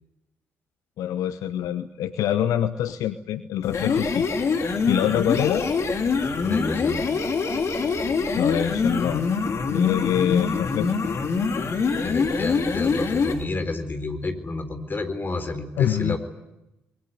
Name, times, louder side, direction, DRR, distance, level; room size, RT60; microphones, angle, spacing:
voice 1, 1.0-4.3 4.9-5.6 8.4-9.2 9.7-11.0 15.8-16.2, left 11 dB, 65° left, 11 dB, 1.0 m, -25 dB
sound 1, 3.6-13.4, left 4 dB, 50° left, 3.0 m, -24 dB
voice 2, 6.4-7.1 12.0-16.2, left 3 dB, 30° left, 9 dB, 4.0 m, -30 dB
24.0 x 22.0 x 9.4 m, 0.92 s
hypercardioid pair, 45°, 6 cm